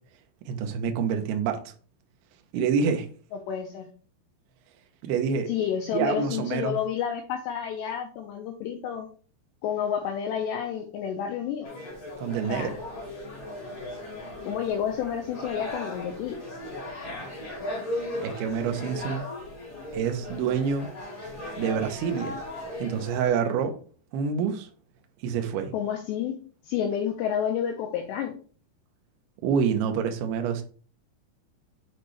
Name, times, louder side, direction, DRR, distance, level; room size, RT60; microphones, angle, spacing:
voice 1, 0.5-1.6 2.5-3.1 5.0-5.5 5.9-6.8 12.2-12.7 18.2-19.3 19.9-20.9 21.6-22.4 22.8-23.8 24.1-24.7 25.2-25.7 29.4-30.6, right 6 dB, 80° right, 5 dB, 2.3 m, -27 dB
voice 2, 3.3-3.9 5.5-9.1 9.6-11.7 12.5-12.8 14.4-16.4 25.7-26.4 26.6-28.3, left 8 dB, 90° left, 3 dB, 2.4 m, -30 dB
sound 1, 11.6-23.3, left 1 dB, 50° left, 1.0 m, -37 dB
7.6 x 4.3 x 3.2 m, 0.41 s
omnidirectional pair, 5.7 m